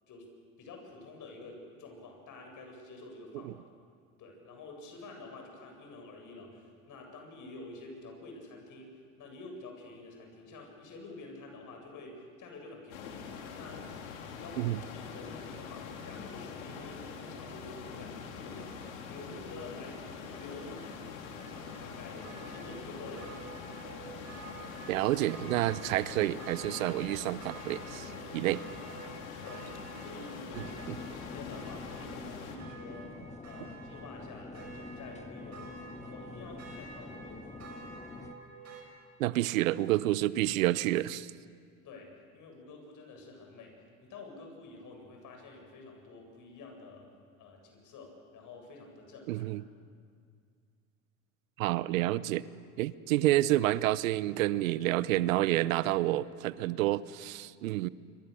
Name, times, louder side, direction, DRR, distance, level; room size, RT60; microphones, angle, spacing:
voice 1, 0.1-3.6 4.2-13.9 14.3-20.9 21.8-23.4 29.4-29.7 30.0-33.2 33.4-37.7 41.8-43.7 44.0-47.1 47.4-49.5, left 3 dB, 50° left, 2 dB, 7.8 m, -49 dB
sound 1, 12.9-32.6, left 6 dB, 75° left, 3.3 m, -44 dB
sound 2, 20.3-38.8, right 4 dB, 40° right, 6.1 m, -50 dB
voice 2, 24.9-28.6 30.6-30.7 39.2-41.3 49.3-49.6 51.6-52.5 52.8-57.9, right 15 dB, 75° right, 18 dB, 0.8 m, -29 dB
sound 3, 30.5-38.4, left 3 dB, 15° left, 1.6 m, -46 dB
27.5 x 24.0 x 6.9 m, 2.1 s
hypercardioid pair, 75°, 41 cm